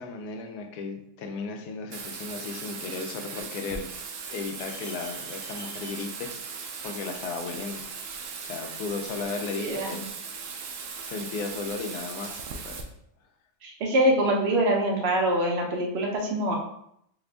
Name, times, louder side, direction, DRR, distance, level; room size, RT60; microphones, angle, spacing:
voice 1, 0.0-3.9 4.3-6.3 6.8-7.8 8.4-10.1 11.0-12.8, left 4 dB, 70° left, 4 dB, 1.1 m, -35 dB
Bathtub (filling or washing), 1.9-12.8, right 5 dB, 80° right, 1.2 m, -38 dB
voice 2, 9.6-10.0 13.6-16.5, right 1 dB, 60° right, 0 dB, 0.6 m, -24 dB
4.2 x 2.5 x 3.3 m, 0.73 s
omnidirectional pair, 1.8 m